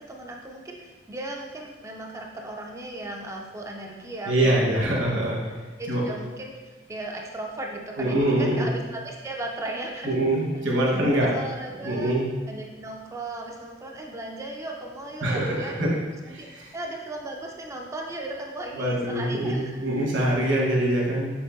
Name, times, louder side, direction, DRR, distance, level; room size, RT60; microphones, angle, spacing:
voice 1, 0.0-4.7 5.8-10.2 11.1-12.1 12.5-15.9 16.3-19.8, right 2 dB, 15° right, 0 dB, 0.3 m, -36 dB
voice 2, 4.3-5.6 5.9-6.0 8.0-8.7 10.0-11.3 11.8-12.3 15.2-15.9 16.2-16.7 18.7-21.3, right 1 dB, 70° right, -3 dB, 1.2 m, -24 dB
6.9 x 2.9 x 2.5 m, 1.3 s
head